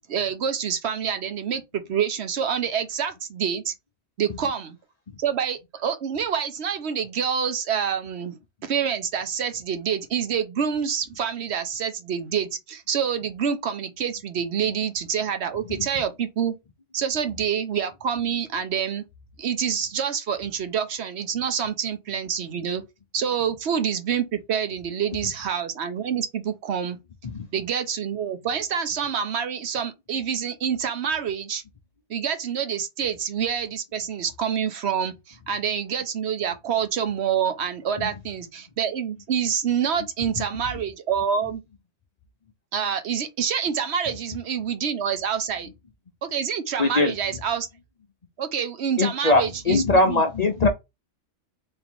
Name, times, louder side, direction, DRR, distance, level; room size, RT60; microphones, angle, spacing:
voice 1, 0.1-3.7 4.2-4.8 5.2-16.5 16.9-19.0 19.4-22.8 23.1-27.0 27.5-31.6 32.1-41.6 42.7-45.7 46.2-47.7 48.4-50.2, right 7 dB, 65° right, 1.0 m, -27 dB
voice 2, 46.8-47.1 49.0-50.7, left 2 dB, 45° left, 0.6 m, -21 dB
3.5 x 2.8 x 3.6 m
omnidirectional pair, 1.2 m